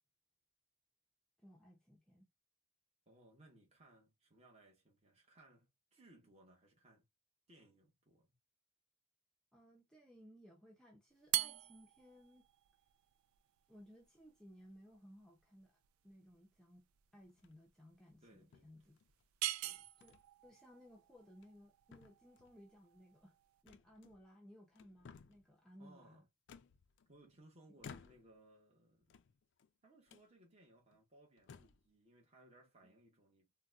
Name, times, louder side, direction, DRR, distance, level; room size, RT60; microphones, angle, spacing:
voice 1, 1.4-2.3 9.5-12.5 13.7-15.8 16.0-16.9 17.1-19.0 20.0-20.2 20.4-23.4 23.6-26.2 27.9-28.0, equal, 5° left, 0.6 m, -61 dB
voice 2, 3.1-7.1 7.5-8.4 18.2-19.0 19.6-19.9 25.8-26.3 27.1-29.2 29.8-33.5, right 1 dB, 30° right, 1.1 m, -65 dB
sound 1, 11.2-23.6, right 13 dB, 90° right, 0.3 m, -45 dB
sound 2, 17.3-17.7 18.5-19.3 20.0-20.2 20.6-20.8 21.3-21.7 21.9-22.6 23.7-24.4 24.7-25.5 26.5-27.3 27.8-28.5 29.0-29.7 30.1-30.3 30.9-31.0 31.4-31.9, left 6 dB, 60° left, 0.4 m, -58 dB
4.0 x 2.2 x 2.4 m
head